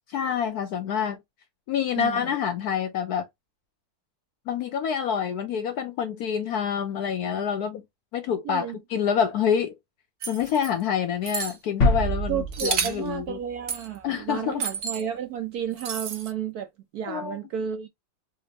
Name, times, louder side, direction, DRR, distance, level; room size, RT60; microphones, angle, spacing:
voice 1, 0.1-1.2 1.7-3.3 4.5-7.8 8.1-9.7 10.3-13.4 14.0-14.6 17.1-17.4, left 8 dB, 75° left, 0.9 m, -27 dB
voice 2, 2.0-2.3 8.4-8.8 12.3-17.9, right 9 dB, 75° right, 0.9 m, -32 dB
sound 1, 10.2-10.7 11.2-11.6 12.5-13.1 13.7-13.9 14.6-15.0 15.8-16.3, right 6 dB, 50° right, 0.9 m, -30 dB
sound 2, 11.8-13.6 13.9-14.0, left 1 dB, 40° left, 1.4 m, -26 dB
4.2 x 2.5 x 2.7 m
omnidirectional pair, 2.1 m